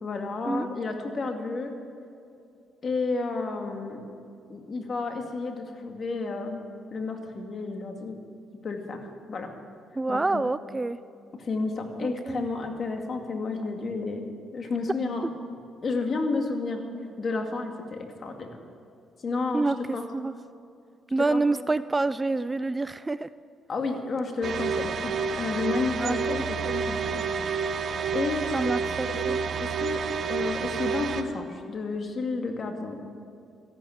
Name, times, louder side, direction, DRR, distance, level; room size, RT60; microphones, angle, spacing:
voice 1, 0.0-1.7 2.8-4.0 4.5-6.6 6.9-8.2 8.6-9.5 10.1-10.4 11.4-14.2 14.5-15.3 15.8-16.8 17.2-18.5 19.2-20.1 21.3-21.4 23.7-27.2 28.1-28.5 29.1-30.0 30.3-33.0, left 3 dB, 45° left, 4 dB, 2.1 m, -31 dB
voice 2, 10.0-11.0 12.0-12.5 19.5-19.8 20.1-20.3 21.1-23.3 26.0-26.4 28.5-29.4, right 3 dB, 20° right, 15 dB, 0.3 m, -27 dB
sound 1, 24.4-31.2, right 5 dB, 60° right, 1.0 m, -29 dB
14.0 x 11.5 x 7.9 m, 2.6 s
cardioid pair, 90°, 0 cm